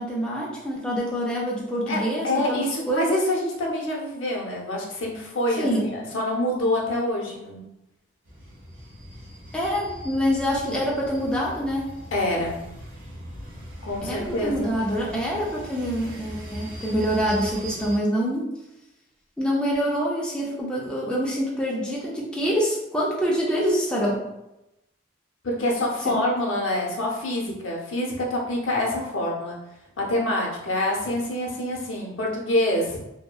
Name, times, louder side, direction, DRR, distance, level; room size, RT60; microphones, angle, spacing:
voice 1, 0.0-3.1 5.6-5.9 9.5-11.9 14.0-18.5 19.4-24.2 26.1-26.3, equal, 5° left, -4 dB, 0.3 m, -26 dB
voice 2, 1.9-7.6 12.1-12.6 13.8-14.7 25.4-29.6 30.0-33.2, left 1 dB, 85° left, -2 dB, 0.6 m, -26 dB
sound 1, 8.2-18.0, right 1 dB, 75° right, 1.1 m, -40 dB
2.6 x 2.1 x 2.2 m, 0.91 s
head